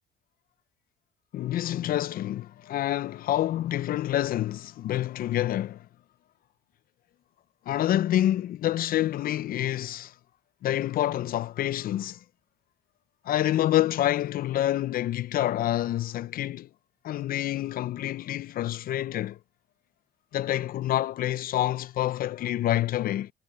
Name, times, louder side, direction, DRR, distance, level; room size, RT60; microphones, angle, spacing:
voice 1, 1.3-5.9 7.7-10.1 10.6-12.2 13.2-16.7 17.0-19.4 20.3-23.3, left 13 dB, 60° left, 0.6 m, -27 dB
cardioid pair, 110°, 17 cm